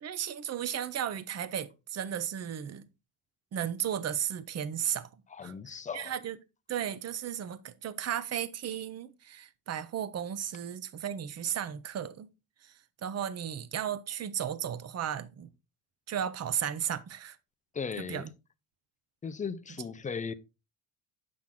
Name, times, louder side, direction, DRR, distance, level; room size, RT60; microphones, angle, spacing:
voice 1, 0.0-2.8 3.5-5.1 5.4-6.4 6.7-12.3 12.6-12.7 13.0-15.5 16.1-17.4 18.1-18.3, right 9 dB, 35° right, 0.7 m, -35 dB
voice 2, 5.3-6.1 17.7-18.3 19.2-20.3, left 5 dB, 20° left, 0.5 m, -37 dB
7.5 x 5.9 x 3.7 m
cardioid pair, 120°, 44 cm